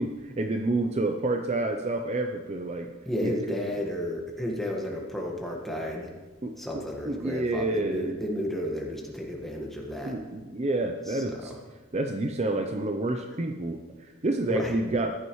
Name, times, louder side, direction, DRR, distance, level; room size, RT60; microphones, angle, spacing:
voice 1, 0.0-2.9 3.2-3.6 6.4-8.2 9.6-9.7 10.0-11.5 11.9-15.1, right 2 dB, 30° right, 5 dB, 0.5 m, -29 dB
voice 2, 3.0-6.1 6.6-10.1 11.1-11.4 14.5-14.7, left 1 dB, ahead, -1 dB, 1.5 m, -32 dB
15.0 x 11.0 x 3.1 m, 1.4 s
head